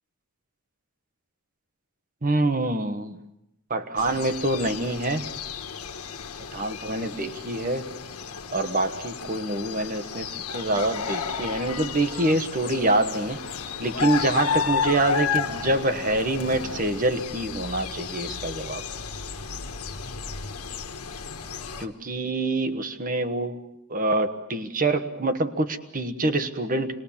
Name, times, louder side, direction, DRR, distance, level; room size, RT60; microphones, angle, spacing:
voice 1, 2.2-3.2 3.7-5.3 6.5-7.9 8.5-13.4 13.8-18.8 21.8-27.0, right 2 dB, 40° right, 10 dB, 1.3 m, -26 dB
sound 1, 4.0-21.9, left 6 dB, 85° left, 1.5 m, -33 dB
sound 2, 10.7-16.8, left 3 dB, 55° left, 1.5 m, -41 dB
26.5 x 20.5 x 7.2 m, 0.86 s
head